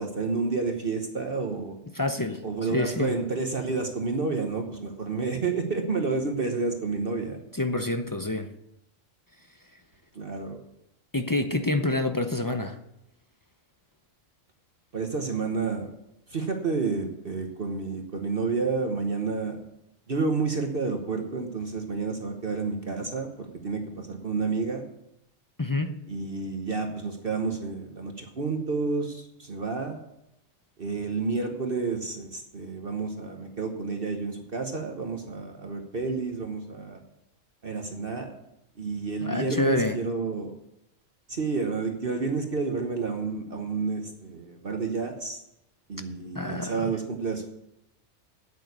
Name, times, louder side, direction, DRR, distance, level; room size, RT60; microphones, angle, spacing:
voice 1, 0.0-1.7 2.4-7.4 10.1-10.6 14.9-15.9 16.3-19.6 20.1-24.8 26.1-30.0 30.8-37.0 37.6-38.4 38.8-40.6 41.3-45.4 45.9-47.5, right 4 dB, 45° right, 4 dB, 1.2 m, -30 dB
voice 2, 1.9-2.4 2.7-3.2 7.5-8.5 11.1-12.8 25.6-25.9 39.2-40.0 46.4-46.9, left 2 dB, 30° left, 7 dB, 0.3 m, -27 dB
8.9 x 8.6 x 8.1 m, 0.84 s
omnidirectional pair, 1.4 m